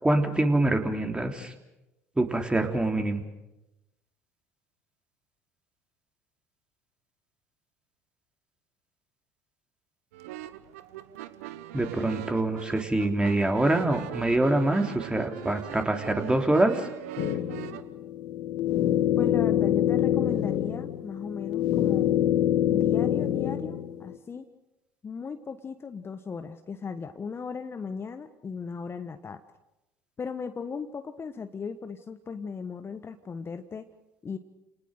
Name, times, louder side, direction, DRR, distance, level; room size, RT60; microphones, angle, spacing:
voice 1, 0.0-1.5 2.2-3.2 11.7-16.9, right 2 dB, 10° right, 5 dB, 3.4 m, -25 dB
sound 1, 10.1-17.8, right 14 dB, 75° right, 1.1 m, -41 dB
sound 2, 17.2-24.1, left 11 dB, 60° left, 1.3 m, -25 dB
voice 2, 19.2-22.1 22.7-24.5 25.0-29.4 30.2-33.9 34.2-34.4, left 5 dB, 30° left, 9 dB, 1.3 m, -37 dB
29.5 x 19.0 x 6.6 m, 0.94 s
hypercardioid pair, 65°, 8 cm